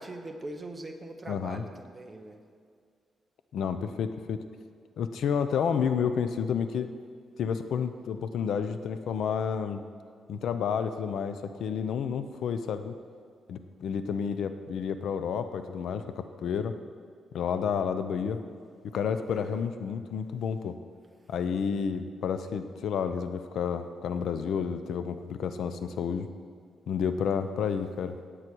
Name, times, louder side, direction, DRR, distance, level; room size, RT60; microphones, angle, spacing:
voice 1, 0.0-2.4 19.3-19.6, right 2 dB, 20° right, 4 dB, 1.1 m, -41 dB
voice 2, 1.3-1.6 3.5-4.4 5.0-6.9 7.4-9.8 10.3-12.9 13.5-16.7 17.3-18.4 18.8-20.8 21.3-26.3 26.9-28.2, left 7 dB, 75° left, 9 dB, 0.7 m, -30 dB
17.5 x 8.2 x 4.7 m, 2.1 s
cardioid pair, 140°, 0 cm